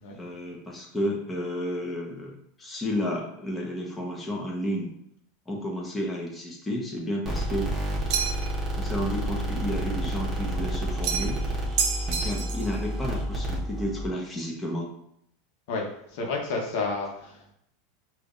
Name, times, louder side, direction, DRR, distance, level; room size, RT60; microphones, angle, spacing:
voice 1, 0.2-4.9 5.5-7.7 8.7-11.4 12.1-14.9, equal, 15° left, -2 dB, 1.0 m, -32 dB
sound 1, 7.3-14.1, right 1 dB, 20° right, 1.1 m, -30 dB
sound 2, 8.1-8.6 11.0-11.4 11.8-12.7, right 6 dB, 60° right, 0.6 m, -29 dB
voice 2, 15.7-17.5, left 3 dB, 65° left, 0 dB, 0.9 m, -31 dB
5.1 x 2.5 x 2.5 m, 0.73 s
hypercardioid pair, 105°, 0 cm